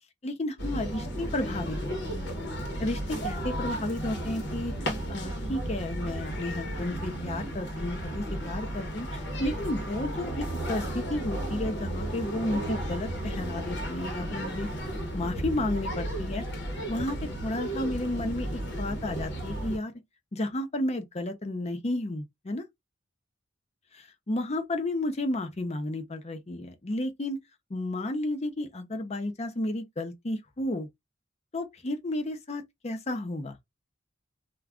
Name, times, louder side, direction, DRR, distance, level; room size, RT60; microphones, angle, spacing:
voice 1, 0.2-2.2 2.8-14.7 15.1-16.5 16.9-19.9 20.3-22.6 23.9-27.4 27.7-30.9 31.5-33.6, left 1 dB, 35° left, 0.6 m, -32 dB
sound 1, 0.6-19.8, right 1 dB, 60° left, 1.0 m, -34 dB
2.4 x 2.4 x 3.4 m
head